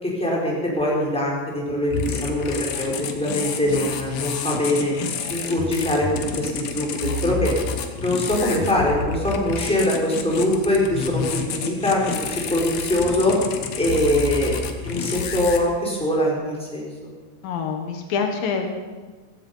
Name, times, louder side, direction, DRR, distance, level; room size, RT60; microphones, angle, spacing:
voice 1, 0.0-5.0 5.3-6.1 6.4-7.5 8.0-12.0 12.3-13.3 13.8-14.5 14.8-16.9, left 1 dB, ahead, -4 dB, 4.1 m, -23 dB
sound 1, 1.9-15.6, left 5 dB, 60° left, 2.0 m, -29 dB
voice 2, 17.4-18.7, left 6 dB, 80° left, 4 dB, 3.1 m, -26 dB
15.5 x 15.0 x 5.5 m, 1.3 s
omnidirectional pair, 4.1 m